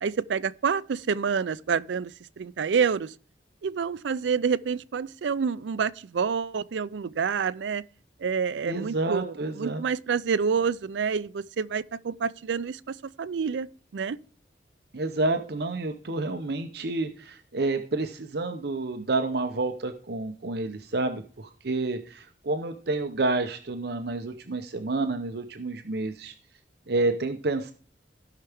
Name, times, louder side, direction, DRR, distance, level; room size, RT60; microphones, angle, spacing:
voice 1, 0.0-3.1 3.6-7.8 8.2-13.7 13.9-14.2, right 6 dB, 90° right, 0.4 m, -28 dB
voice 2, 8.6-9.8 14.9-26.3 26.9-27.7, right 2 dB, 60° right, 0.8 m, -29 dB
15.5 x 5.7 x 3.5 m
head